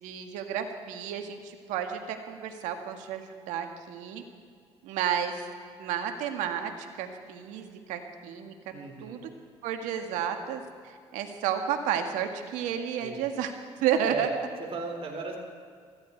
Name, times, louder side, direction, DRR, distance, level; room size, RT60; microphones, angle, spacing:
voice 1, 0.0-4.2 4.8-5.4 5.8-8.5 9.0-9.3 9.6-13.5 13.8-14.3, right 9 dB, 85° right, 6 dB, 1.7 m, -31 dB
voice 2, 8.7-9.3 13.0-13.3 14.0-14.3 14.6-15.4, right 4 dB, 50° right, 2 dB, 4.0 m, -36 dB
20.5 x 15.0 x 4.6 m, 2.1 s
supercardioid pair, 75°, 12 cm